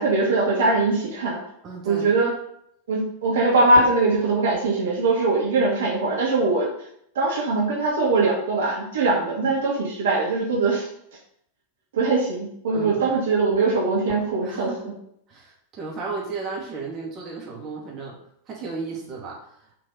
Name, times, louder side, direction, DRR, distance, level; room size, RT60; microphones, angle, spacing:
voice 1, 0.0-1.4 1.8-2.3 2.9-6.7 7.1-10.9 11.9-14.9, right 3 dB, 60° right, -4 dB, 2.2 m, -21 dB
voice 2, 1.6-2.1 9.1-9.3 12.7-13.2 14.4-14.9 15.3-18.2 18.5-19.6, right 4 dB, 30° right, -3 dB, 3.0 m, -34 dB
6.1 x 5.8 x 5.6 m, 0.71 s
figure-of-eight pair, 90°, 0 cm